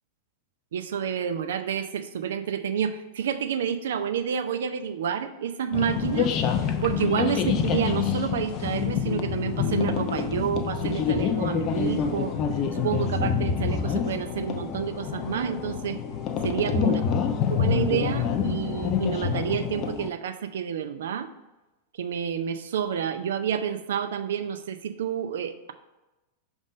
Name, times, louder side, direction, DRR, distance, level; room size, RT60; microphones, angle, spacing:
voice 1, 0.7-6.3 6.8-12.3 12.7-16.0 16.4-17.0 17.5-21.3 22.0-25.7, right 8 dB, 60° right, 8 dB, 0.6 m, -29 dB
sound 1, 5.7-20.1, left 7 dB, 35° left, 0.5 m, -27 dB
6.3 x 3.6 x 4.9 m, 1.0 s
figure-of-eight pair, 90°, 0 cm